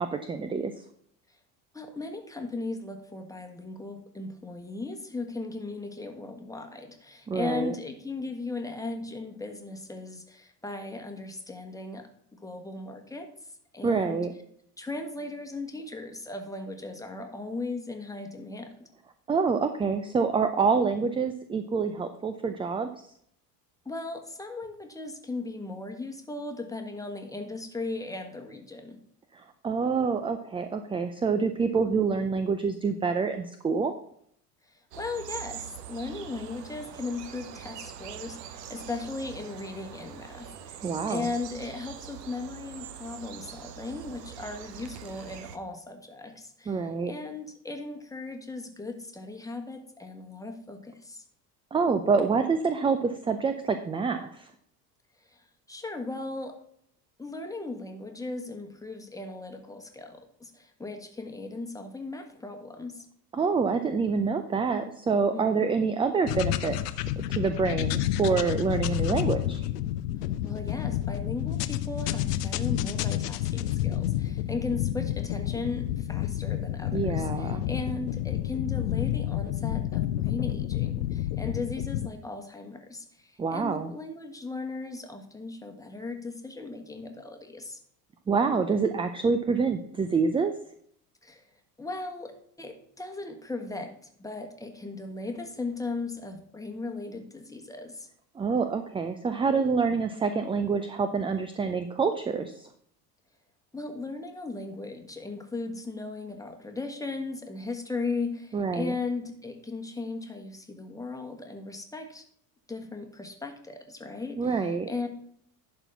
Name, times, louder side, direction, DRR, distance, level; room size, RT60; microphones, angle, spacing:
voice 1, 0.1-0.7 7.3-7.7 13.8-14.3 19.3-22.9 29.3-33.9 40.8-41.3 46.7-47.1 51.7-54.5 63.3-66.8 67.2-69.6 76.9-77.6 83.4-83.9 88.3-90.5 98.4-102.7 108.5-109.0 114.4-114.9, right 5 dB, 10° right, 9 dB, 0.4 m, -27 dB
voice 2, 1.7-13.3 13.7-14.2 14.8-18.8 23.8-29.0 34.7-51.2 55.2-56.6 57.2-63.0 65.3-65.7 70.4-87.8 91.2-91.4 91.8-98.1 103.7-112.2 112.7-115.1, left 3 dB, 5° left, 4 dB, 1.5 m, -37 dB
sound 1, 34.9-45.6, right 9 dB, 75° right, 0.9 m, -43 dB
sound 2, 66.3-82.1, left 13 dB, 70° left, 0.7 m, -30 dB
11.0 x 4.3 x 5.7 m, 0.67 s
figure-of-eight pair, 65°, 50 cm